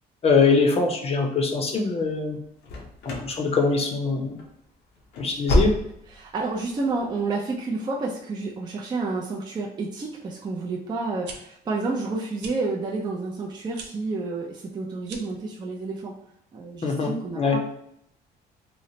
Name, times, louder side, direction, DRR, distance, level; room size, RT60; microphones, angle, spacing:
voice 1, 0.2-2.4 3.0-4.4 5.2-5.7 16.8-17.6, left 4 dB, 35° left, 2 dB, 0.6 m, -23 dB
sound 1, 2.6-3.4 3.6-4.1 4.4-4.5 5.0-6.2 6.5-6.6 7.1-7.3, left 1 dB, 85° left, 0.7 m, -26 dB
voice 2, 6.1-16.1 16.5-17.6, right 3 dB, 25° right, -2 dB, 0.4 m, -30 dB
sound 2, 11.1-11.4 12.4-12.6 13.7-13.9 15.0-15.4, right 5 dB, 85° right, 0.5 m, -40 dB
3.0 x 2.0 x 2.7 m, 0.73 s
cardioid pair, 120°, 18 cm